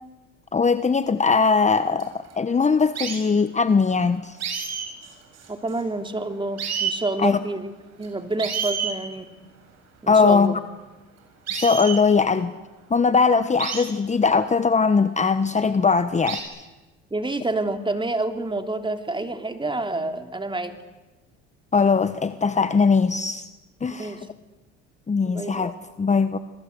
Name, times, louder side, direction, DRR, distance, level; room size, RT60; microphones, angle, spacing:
voice 1, 0.5-4.4 7.2-7.4 10.1-10.6 11.5-12.5 12.9-16.4 21.7-23.4 23.8-24.2 25.1-26.4, left 5 dB, 25° left, 11 dB, 1.2 m, -20 dB
sound 1, 2.0-2.3 2.9-3.2 4.4-6.0 6.3-6.4 6.6-7.0 8.0-8.1 8.4-9.0 11.5-12.0 13.6-13.8 15.0-15.1 16.3-16.4, right 7 dB, 55° right, 7.9 m, -29 dB
voice 2, 5.5-7.7 8.0-9.3 10.0-10.6 17.1-20.7 24.0-24.3 25.2-25.7, right 2 dB, 15° right, 6 dB, 3.2 m, -28 dB
29.5 x 22.0 x 8.2 m, 1.2 s
supercardioid pair, 75°, 30 cm